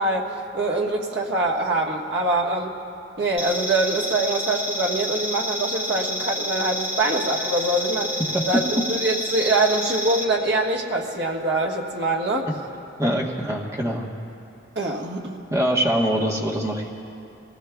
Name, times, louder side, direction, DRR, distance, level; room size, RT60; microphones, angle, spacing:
voice 1, 0.0-2.7 3.2-8.2 8.5-12.5 13.0-13.1 14.7-15.4, right 2 dB, 55° right, -1 dB, 1.4 m, -24 dB
sound 1, 3.4-10.2, left 1 dB, 25° left, 1.0 m, -29 dB
voice 2, 13.0-14.1 15.5-16.9, equal, 15° right, -1 dB, 1.1 m, -23 dB
23.0 x 18.0 x 2.3 m, 2.7 s
head